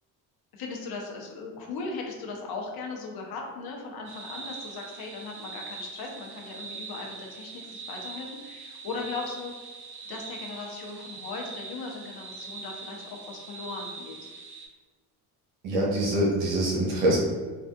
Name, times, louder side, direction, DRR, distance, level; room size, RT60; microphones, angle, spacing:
voice 1, 0.5-9.5 10.1-14.3, left 4 dB, 50° left, 0 dB, 0.8 m, -38 dB
sound 1, 4.0-14.7, right 4 dB, 50° right, 0.8 m, -42 dB
voice 2, 15.6-17.2, right 1 dB, 75° right, -4 dB, 1.1 m, -24 dB
3.6 x 2.4 x 2.3 m, 1.4 s
hypercardioid pair, 55°, 49 cm